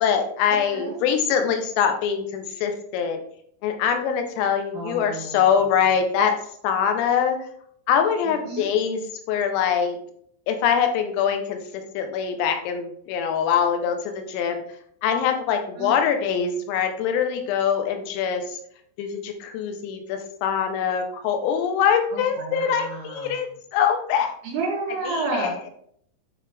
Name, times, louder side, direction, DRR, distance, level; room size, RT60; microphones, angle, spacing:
voice 1, 0.0-3.2 3.6-6.3 6.6-7.4 7.9-9.0 9.3-10.0 10.5-14.6 15.0-18.6 19.0-24.4 25.1-25.7, left 7 dB, 85° left, 6 dB, 3.5 m, -23 dB
voice 2, 4.7-5.5 5.8-5.9 8.2-8.7 15.8-16.0 22.1-23.4 24.4-25.5, right 3 dB, 65° right, -3 dB, 2.7 m, -31 dB
9.0 x 4.7 x 3.4 m, 0.66 s
omnidirectional pair, 5.9 m